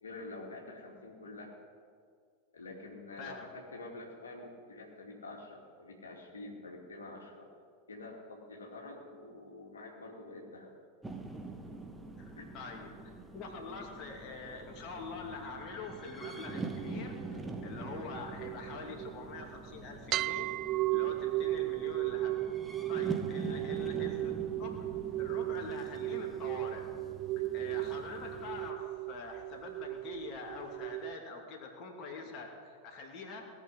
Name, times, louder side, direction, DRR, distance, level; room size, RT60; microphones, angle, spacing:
voice 1, 0.0-1.5 2.5-7.5 7.9-10.7 12.4-12.5 23.4-23.6, left 2 dB, 70° left, -1 dB, 2.4 m, -47 dB
voice 2, 3.2-3.5 12.2-12.9 13.3-20.5 20.9-22.6 22.9-24.3 24.6-24.9 25.2-26.9 27.4-33.5, left 4 dB, 35° left, 0 dB, 2.6 m, -45 dB
sound 1, 11.0-28.7, right 3 dB, 10° right, 1.2 m, -45 dB
sound 2, 16.2-19.6 20.1-31.2, right 16 dB, 35° right, 0.4 m, -36 dB
18.5 x 6.8 x 9.6 m, 2.2 s
figure-of-eight pair, 90°, 0 cm